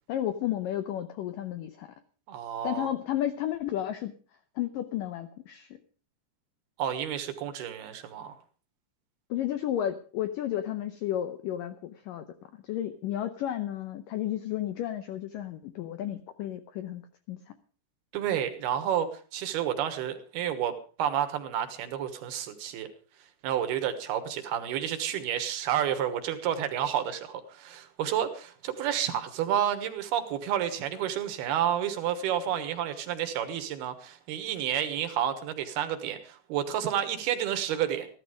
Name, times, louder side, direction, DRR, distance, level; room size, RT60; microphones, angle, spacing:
voice 1, 0.1-2.0 2.6-4.1 4.6-5.8 9.3-12.3 12.5-17.0 17.3-17.5, left 11 dB, 80° left, 10 dB, 1.9 m, -32 dB
voice 2, 2.3-2.9 6.8-8.3 18.1-22.9 23.4-38.1, right 10 dB, 70° right, 9 dB, 3.1 m, -30 dB
15.0 x 13.0 x 5.0 m, 0.39 s
omnidirectional pair, 5.0 m